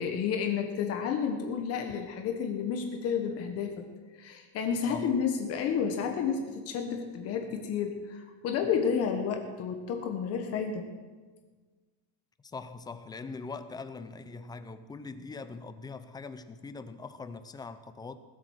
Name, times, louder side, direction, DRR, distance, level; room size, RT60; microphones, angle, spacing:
voice 1, 0.0-3.8 4.2-10.9, left 7 dB, 45° left, 4 dB, 1.5 m, -31 dB
voice 2, 12.4-18.2, left 4 dB, 10° left, 11 dB, 0.5 m, -42 dB
19.0 x 8.6 x 6.5 m, 1.4 s
cardioid pair, 165°, 34 cm